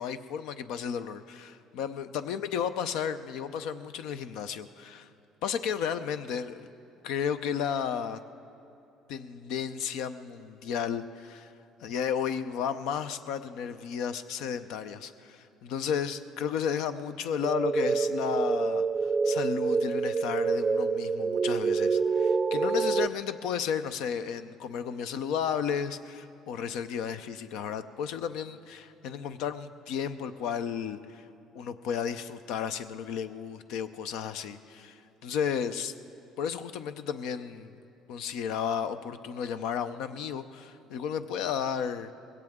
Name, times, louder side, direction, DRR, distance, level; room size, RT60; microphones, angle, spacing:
voice 1, 0.0-5.1 5.4-6.7 7.0-8.2 9.1-11.5 11.8-31.2 31.5-35.9 36.4-37.8 38.1-42.1, left 7 dB, 80° left, 11 dB, 0.6 m, -33 dB
sound 1, 17.4-23.1, right 4 dB, 25° right, 0.3 m, -27 dB
21.0 x 17.0 x 3.7 m, 2.8 s
cardioid pair, 100°, 0 cm